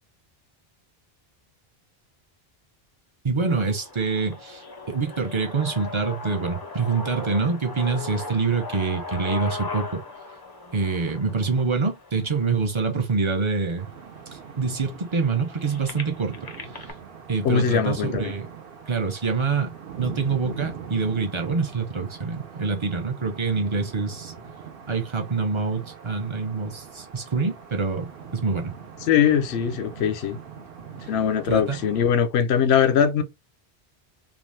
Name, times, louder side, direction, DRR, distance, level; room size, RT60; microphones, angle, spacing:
voice 1, 3.2-10.0 10.7-13.9 14.3-16.5 17.3-18.5 18.9-24.3 24.9-28.7 31.5-31.8, right 4 dB, 40° right, 0.5 m, -26 dB
sound 1, 3.5-13.4 14.1-14.2 14.4-16.9, left 3 dB, 40° left, 0.3 m, -38 dB
sound 2, 13.8-32.2, right 7 dB, 70° right, 0.9 m, -42 dB
voice 2, 17.4-18.3 29.1-30.4 31.1-33.2, left 8 dB, 90° left, 0.8 m, -21 dB
2.5 x 2.3 x 3.2 m
omnidirectional pair, 1.1 m